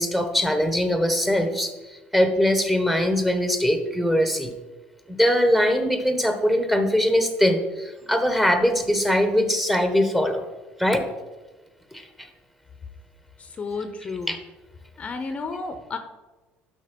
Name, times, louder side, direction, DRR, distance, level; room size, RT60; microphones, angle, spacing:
voice 1, 0.0-4.5 5.2-10.5 10.8-11.1 11.9-12.3 14.3-14.4, equal, 5° right, 6 dB, 1.3 m, -22 dB
voice 2, 13.4-14.3 15.0-16.0, left 4 dB, 30° left, 7 dB, 0.9 m, -32 dB
12.0 x 5.2 x 5.3 m, 1.2 s
cardioid pair, 115°, 4 cm